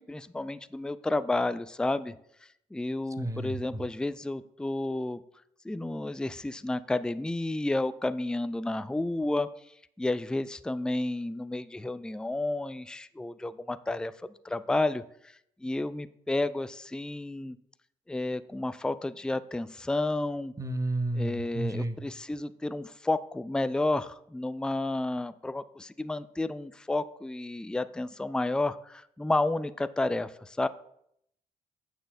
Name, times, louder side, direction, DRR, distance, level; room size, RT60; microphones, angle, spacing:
voice 1, 0.0-2.1 2.7-5.2 5.6-9.5 10.0-14.1 14.4-15.0 15.6-17.6 18.1-20.5 21.1-30.7, left 2 dB, 5° left, 14 dB, 0.4 m, -31 dB
voice 2, 3.2-3.6 20.6-22.0, right 1 dB, 20° right, 9 dB, 1.1 m, -31 dB
15.5 x 6.2 x 2.3 m, 0.72 s
hypercardioid pair, 45°, 17 cm